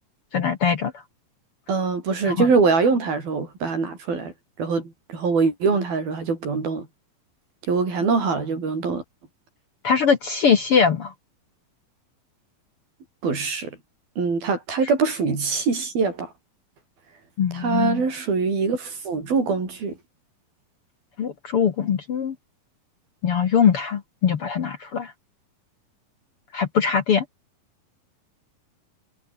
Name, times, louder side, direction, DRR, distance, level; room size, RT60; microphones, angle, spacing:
voice 1, 0.3-0.9 2.3-2.5 9.8-11.1 17.4-18.0 21.2-22.4 23.2-25.1 26.5-27.2, left 7 dB, 50° left, 1.8 m, -21 dB
voice 2, 1.7-6.9 7.7-9.0 13.2-13.8 14.2-16.3 17.5-20.0, right 4 dB, 80° right, 8.4 m, -23 dB
omnidirectional pair, 4.2 m